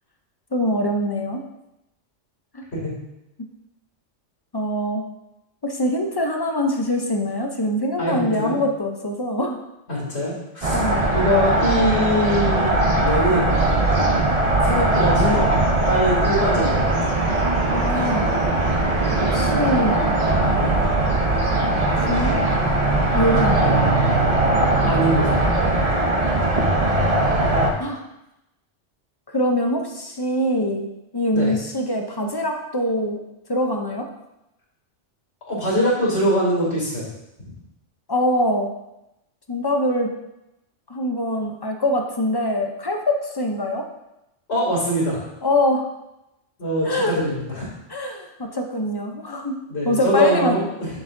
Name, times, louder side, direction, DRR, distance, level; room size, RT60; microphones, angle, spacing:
voice 1, 0.5-1.4 2.5-2.7 4.5-5.1 5.6-9.6 10.7-11.1 17.7-18.3 19.2-20.0 22.0-22.4 23.1-23.8 27.8-28.0 29.3-33.2 33.5-34.1 38.1-38.7 39.5-40.1 40.9-43.8 45.4-45.9 46.8-47.1 47.9-49.6 49.8-50.5, left 1 dB, 30° left, 3 dB, 0.5 m, -23 dB
voice 2, 8.0-8.6 9.9-10.8 11.1-13.5 14.6-15.5 15.9-17.0 20.5-20.7 24.9-25.4 31.3-31.5 35.5-37.1 44.5-45.3 46.6-47.7 49.7-50.9, equal, 65° left, -5 dB, 2.8 m, -23 dB
sound 1, 10.6-27.7, right 2 dB, 35° right, 0.8 m, -20 dB
7.2 x 6.8 x 2.6 m, 0.90 s
omnidirectional pair, 1.2 m